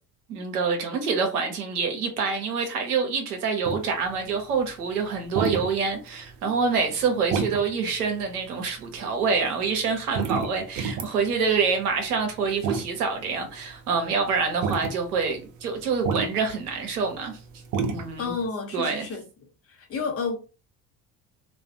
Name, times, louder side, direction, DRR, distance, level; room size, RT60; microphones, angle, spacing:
voice 1, 0.3-17.4 17.9-18.3 18.7-19.1, right 5 dB, 75° right, 0.8 m, -26 dB
sound 1, 3.6-18.5, right 5 dB, 40° right, 0.6 m, -32 dB
voice 2, 18.2-19.2 19.7-20.4, left 4 dB, 30° left, 0.9 m, -30 dB
2.3 x 2.2 x 2.7 m
figure-of-eight pair, 50°, 46 cm